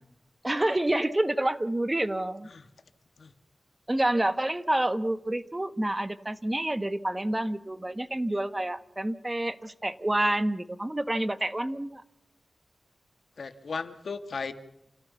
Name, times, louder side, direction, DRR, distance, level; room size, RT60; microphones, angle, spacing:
voice 1, 0.4-2.5 3.9-12.0, right 1 dB, 20° right, 12 dB, 1.4 m, -28 dB
voice 2, 13.4-14.5, left 4 dB, 80° left, 8 dB, 2.1 m, -36 dB
29.5 x 17.0 x 7.1 m, 0.83 s
wide cardioid pair, 80°, 0 cm